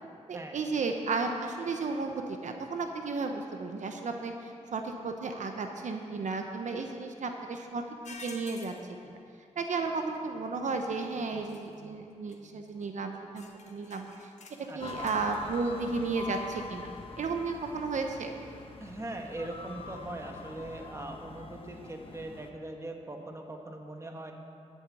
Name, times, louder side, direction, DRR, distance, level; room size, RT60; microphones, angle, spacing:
voice 1, 0.3-7.8 8.2-8.7 9.0-9.2 9.6-14.3 14.7-16.9 17.2-18.3, right 4 dB, 70° right, 4 dB, 0.9 m, -33 dB
sound 1, 8.0-8.8 11.5-11.7 12.3-12.4 12.6-12.9 13.4-15.4, left 3 dB, 65° left, 1.3 m, -49 dB
voice 2, 14.7-15.1 18.8-24.3, right 1 dB, 20° right, 3 dB, 1.4 m, -41 dB
sound 2, 14.8-22.5, left 3 dB, 45° left, 1.1 m, -44 dB
11.5 x 7.2 x 8.5 m, 2.5 s
wide cardioid pair, 100°, 13 cm